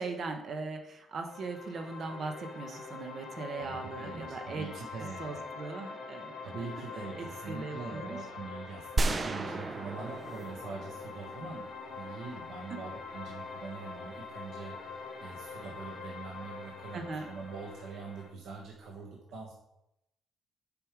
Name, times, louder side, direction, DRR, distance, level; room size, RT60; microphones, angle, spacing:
voice 1, 0.0-4.6 5.2-6.3 6.6-6.7 7.2-8.2 12.7-12.8 16.9-17.3, right 3 dB, 45° right, 5 dB, 1.0 m, -39 dB
sound 1, 1.3-18.3, left 4 dB, 55° left, 2.2 m, -44 dB
voice 2, 3.6-5.4 6.4-19.5, right 4 dB, 75° right, -2 dB, 1.4 m, -43 dB
sound 2, 9.0-11.9, right 3 dB, 25° right, 0.4 m, -34 dB
sound 3, 9.1-11.0 12.6-12.7 13.5-13.7 14.7-14.8, left 2 dB, 20° left, 1.5 m, -56 dB
7.1 x 5.3 x 4.7 m, 0.84 s
cardioid pair, 145°, 0 cm